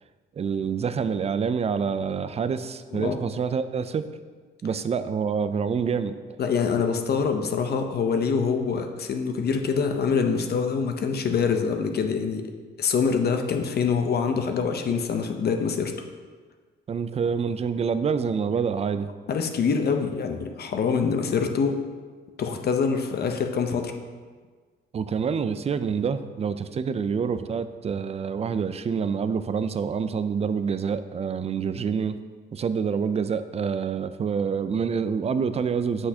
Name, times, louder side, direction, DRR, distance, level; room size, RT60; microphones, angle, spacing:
voice 1, 0.4-4.1 4.6-6.2 16.9-19.1 24.9-32.2 32.5-36.1, right 6 dB, 30° right, 11 dB, 0.4 m, -27 dB
voice 2, 6.4-12.5 12.8-15.9 19.3-21.8 22.4-23.9, left 5 dB, 55° left, 5 dB, 0.7 m, -25 dB
7.6 x 6.2 x 2.8 m, 1.5 s
cardioid pair, 90°, 20 cm